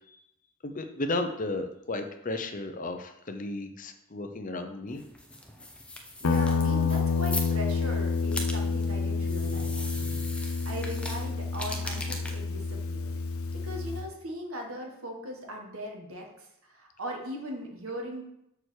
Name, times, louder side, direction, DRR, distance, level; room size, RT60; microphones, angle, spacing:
voice 1, 0.6-5.0, left 2 dB, 35° left, 7 dB, 0.7 m, -34 dB
sound 1, 4.9-14.1, left 1 dB, 5° left, 0.8 m, -41 dB
Guitar, 6.2-14.1, left 4 dB, 75° left, 0.6 m, -29 dB
voice 2, 6.2-10.2 10.6-13.1 13.6-16.3 16.6-18.2, equal, 75° right, 1 dB, 1.7 m, -39 dB
6.8 x 4.6 x 6.5 m, 0.80 s
head